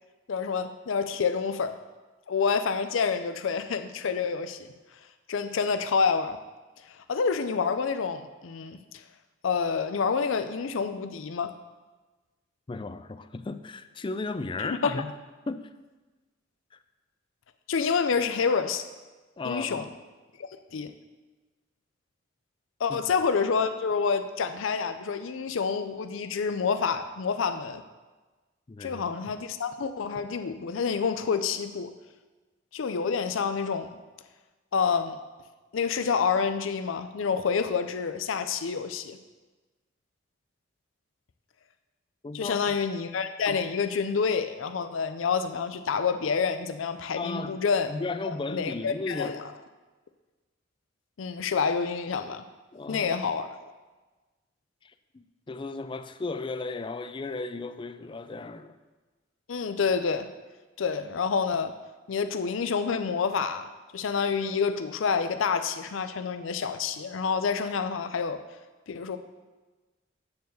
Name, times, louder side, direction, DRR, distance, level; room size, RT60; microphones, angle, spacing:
voice 1, 0.3-1.8 2.3-4.7 5.3-6.4 6.9-9.0 9.4-11.5 14.6-15.0 17.7-18.8 19.4-19.9 20.4-20.9 22.8-27.8 28.8-31.9 32.7-34.0 34.7-35.2 35.7-39.2 42.3-47.9 48.3-49.5 51.2-52.4 52.9-53.5 59.5-60.3 60.8-61.7 62.1-68.4 68.9-69.2, left 5 dB, 80° left, 9 dB, 0.5 m, -28 dB
voice 2, 12.7-15.1 15.5-15.6 16.7-16.8 19.4-19.9 22.9-23.0 28.7-29.0 42.2-42.7 47.2-47.6 47.9-49.5 52.7-53.1 54.8-58.8, left 3 dB, 25° left, 11 dB, 0.4 m, -35 dB
9.3 x 4.7 x 6.7 m, 1.2 s
head